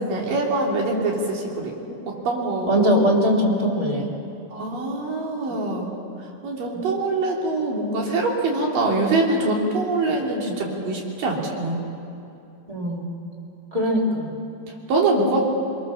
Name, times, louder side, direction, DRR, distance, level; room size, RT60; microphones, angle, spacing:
voice 1, 0.0-2.9 4.5-6.0 6.4-11.8 14.9-15.4, right 2 dB, 55° right, -2 dB, 4.6 m, -24 dB
voice 2, 2.7-4.1 12.7-13.1 13.7-14.3, equal, 10° right, -2 dB, 2.8 m, -21 dB
24.0 x 23.0 x 7.1 m, 2.7 s
omnidirectional pair, 4.8 m